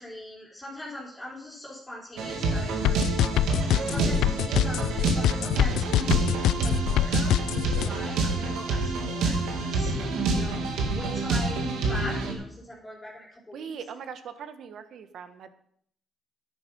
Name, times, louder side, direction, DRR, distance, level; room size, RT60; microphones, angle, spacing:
voice 1, 0.0-3.1 3.9-9.9 10.3-13.7, left 1 dB, 15° left, -4 dB, 3.9 m, -41 dB
sound 1, 2.2-12.3, right 3 dB, 90° right, 2.3 m, -27 dB
sound 2, 2.9-7.9, left 13 dB, 85° left, 0.4 m, -24 dB
voice 2, 13.5-15.5, right 7 dB, 70° right, 10 dB, 1.2 m, -40 dB
10.5 x 9.9 x 5.5 m, 0.65 s
cardioid pair, 90°, 0 cm